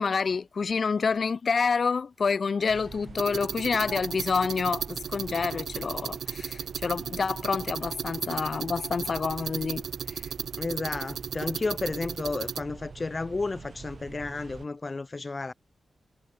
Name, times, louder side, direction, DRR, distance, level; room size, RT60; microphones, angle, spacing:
voice 1, 0.0-9.8 10.1-10.2, left 5 dB, 55° left, 1.3 m, -28 dB
sound 1, 2.7-14.7, right 5 dB, 55° right, 7.0 m, -45 dB
sound 2, 3.2-12.6, right 8 dB, 85° right, 2.4 m, -35 dB
voice 2, 10.6-15.5, left 3 dB, 35° left, 0.6 m, -32 dB
cardioid pair, 75°, 0 cm